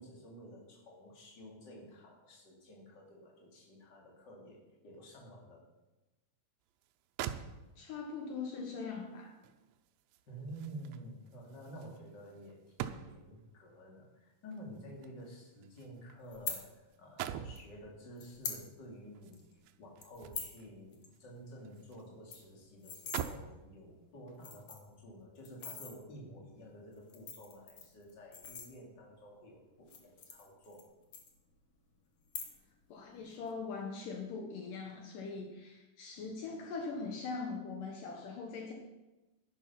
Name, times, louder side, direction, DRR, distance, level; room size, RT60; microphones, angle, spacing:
voice 1, 0.0-5.6 10.3-19.4 19.8-30.8, right 1 dB, 30° left, -2 dB, 2.9 m, -51 dB
sound 1, 6.8-6.9 7.2-8.0 9.4-13.4 14.5-16.7 16.9-17.7 19.2-20.7 21.1-22.1 22.4-22.5 22.9-23.6 24.3-24.5, right 10 dB, 85° right, 2.4 m, -44 dB
voice 2, 7.8-9.3 32.9-38.7, left 4 dB, 70° left, 2 dB, 2.7 m, -41 dB
sound 2, 16.3-16.6 17.6-17.7 18.2-18.6 19.0-19.1 19.3-19.5 20.0-20.6 20.9-21.1 21.4-21.5 21.8-21.9 22.1-23.3 23.9-24.0 24.3-24.9 25.4-25.9 26.9-29.1 29.8-30.9 31.1-31.8 32.2-32.8 33.1-33.5, left 6 dB, 50° left, 2.0 m, -43 dB
11.0 x 10.5 x 5.7 m, 1.1 s
omnidirectional pair, 4.1 m